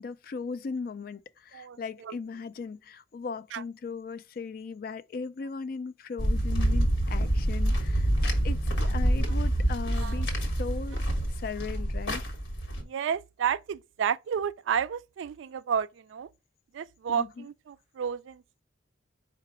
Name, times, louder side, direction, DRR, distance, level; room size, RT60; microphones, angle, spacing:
voice 1, 0.0-8.1 8.4-10.3 10.6-11.1 11.4-12.2 17.1-17.5, left 4 dB, 50° left, 0.3 m, -37 dB
voice 2, 1.5-2.2 3.5-3.6 10.0-10.2 12.8-16.3 16.7-18.4, right 7 dB, 75° right, 0.3 m, -31 dB
sound 1, 6.2-12.8, right 1 dB, 80° left, 1.3 m, -27 dB
4.6 x 2.4 x 4.7 m
head